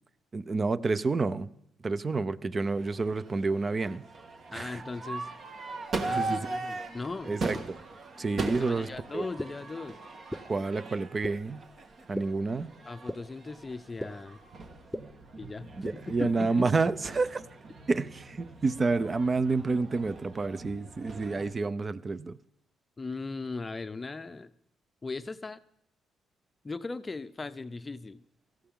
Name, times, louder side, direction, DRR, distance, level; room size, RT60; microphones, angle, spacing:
voice 1, 0.3-1.5 1.8-4.1 4.5-4.8 6.1-6.4 7.2-7.8 8.2-9.2 10.4-11.6 12.1-12.7 15.4-15.5 15.8-17.4 17.9-22.4, right 3 dB, 35° right, 0.6 m, -29 dB
Crowd / Fireworks, 2.5-21.5, right 3 dB, 50° right, 1.6 m, -40 dB
voice 2, 4.5-5.3 6.1-7.3 8.6-10.0 12.8-14.4 15.4-16.7 23.0-24.5 25.0-25.6 26.6-28.2, left 3 dB, 25° left, 0.6 m, -38 dB
sound 1, 7.5-7.6 8.5-8.6 9.4-9.5 10.3-10.4 11.2-11.3 12.1-12.2 13.1-13.2 14.0-14.1 14.9-15.0 15.8-15.9, left 1 dB, ahead, 0.9 m, -33 dB
17.0 x 14.5 x 3.7 m
cardioid pair, 90°, 0 cm